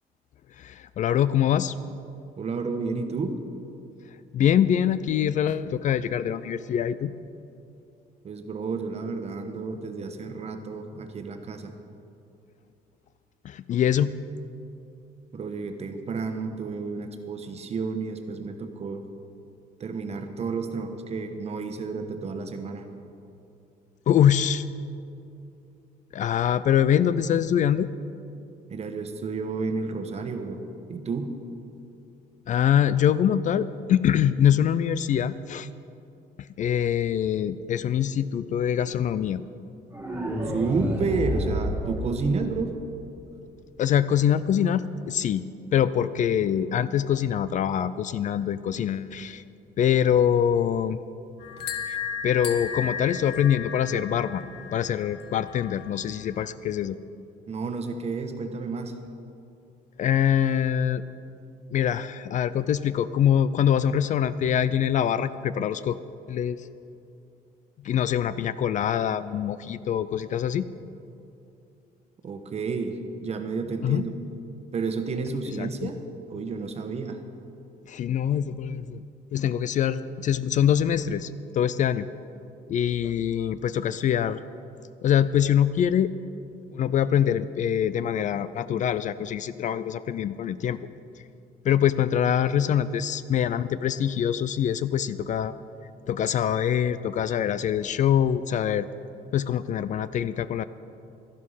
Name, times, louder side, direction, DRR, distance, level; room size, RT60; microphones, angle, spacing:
voice 1, 0.6-1.7 4.3-7.1 13.4-14.2 24.1-24.6 26.1-27.9 32.5-35.7 36.4-39.4 43.8-45.4 45.7-49.4 49.8-51.0 51.9-52.0 52.2-57.0 60.0-61.0 61.7-66.0 66.3-66.7 67.8-70.7 73.8-74.0 75.6-75.9 77.9-79.0 79.3-82.1 82.7-84.4 85.0-86.1 86.7-90.8 91.6-95.5 96.1-98.9 99.3-100.6, left 9 dB, 50° left, 15 dB, 0.4 m, -24 dB
voice 2, 2.4-3.4 8.2-11.7 15.3-19.0 19.8-22.9 28.7-30.6 30.9-31.4 40.5-42.8 57.5-59.0 72.2-74.1 74.7-76.0 76.3-77.2, right 4 dB, 40° right, 7 dB, 1.2 m, -31 dB
sound 1, 39.9-42.9, equal, 10° right, 2.0 m, -30 dB
sound 2, 51.4-56.4, left 6 dB, 70° left, 1.4 m, -35 dB
12.0 x 11.0 x 5.6 m, 2.6 s
cardioid pair, 110°, 17 cm